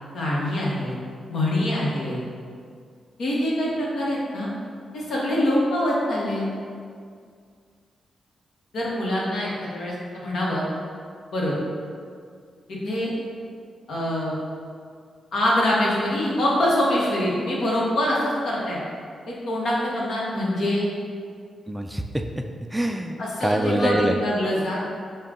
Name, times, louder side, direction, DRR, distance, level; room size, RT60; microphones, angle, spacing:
voice 1, 0.1-1.0 1.3-2.2 3.2-4.5 4.9-6.4 8.7-10.6 11.3-11.6 12.7-13.1 13.9-14.3 15.3-18.8 19.3-20.9 23.2-24.9, left 1 dB, 75° left, -5 dB, 1.0 m, -24 dB
voice 2, 21.7-22.4 22.7-24.2, right 1 dB, 10° right, 5 dB, 0.3 m, -25 dB
5.5 x 2.2 x 3.7 m, 2.1 s
supercardioid pair, 55°, 0 cm